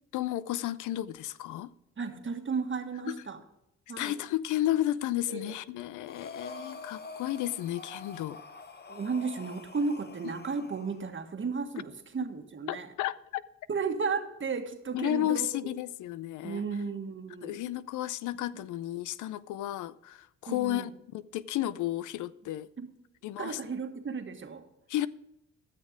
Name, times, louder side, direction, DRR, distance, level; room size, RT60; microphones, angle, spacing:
voice 1, 0.1-1.7 3.1-3.2 4.0-8.4 12.7-13.4 14.9-16.6 17.4-22.7 23.2-23.6 24.9-25.1, left 14 dB, 80° left, 0.5 m, -33 dB
voice 2, 2.0-3.4 3.9-4.2 5.3-5.5 6.6-6.7 8.9-12.9 13.7-15.5 16.4-17.7 20.5-20.9 22.8-22.9 23.4-24.7, right 5 dB, 40° right, 1.5 m, -34 dB
Breathing, 6.1-11.0, left 4 dB, 35° left, 1.0 m, -46 dB
13.5 x 6.7 x 5.0 m
supercardioid pair, 65°, 30 cm